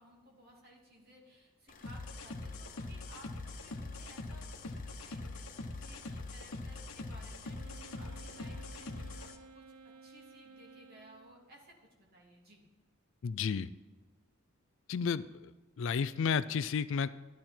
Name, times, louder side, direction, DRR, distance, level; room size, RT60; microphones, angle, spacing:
voice 1, 0.0-12.6, right 1 dB, 45° right, -2 dB, 2.9 m, -58 dB
sound 1, 1.7-9.3, left 5 dB, 40° left, 0.8 m, -57 dB
sound 2, 1.8-9.4, left 2 dB, 80° left, 1.1 m, -43 dB
Wind instrument woodwind instrument, 7.5-11.5, right 5 dB, 85° right, 0.6 m, -55 dB
voice 2, 13.2-13.7 14.9-15.5 15.8-17.1, left 6 dB, 60° left, 15 dB, 0.4 m, -32 dB
13.5 x 10.5 x 4.4 m, 1.2 s
head